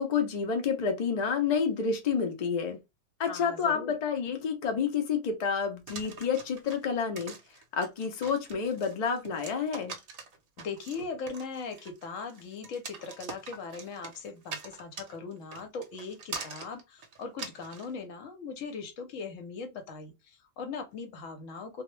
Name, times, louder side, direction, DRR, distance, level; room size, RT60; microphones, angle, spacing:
voice 1, 0.0-2.8 3.2-7.3 7.7-10.0, left 6 dB, 50° left, 0.5 m, -29 dB
voice 2, 3.3-3.9 10.6-21.8, left 4 dB, 80° left, 1.0 m, -39 dB
sound 1, 5.9-17.9, right 4 dB, 55° right, 0.7 m, -43 dB
2.3 x 2.1 x 3.0 m
omnidirectional pair, 1.3 m